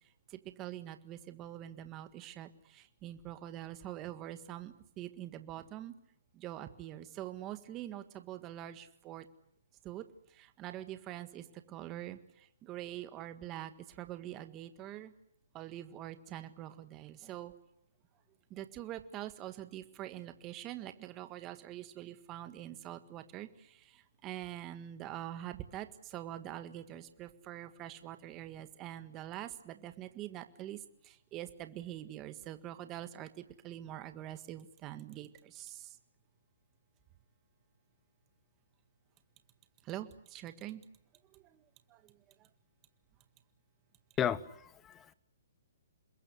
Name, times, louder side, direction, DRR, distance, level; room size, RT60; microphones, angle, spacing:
voice 1, 0.3-5.9 6.3-9.3 9.8-10.1 10.3-15.1 15.5-17.5 18.5-36.0 39.8-40.8 41.3-41.6 41.9-42.1, right 13 dB, 20° right, 9 dB, 1.7 m, -45 dB
voice 2, 44.2-45.1, left 9 dB, 15° left, 17 dB, 1.1 m, -34 dB
28.0 x 21.5 x 9.7 m, 0.72 s
hypercardioid pair, 155°, 0 cm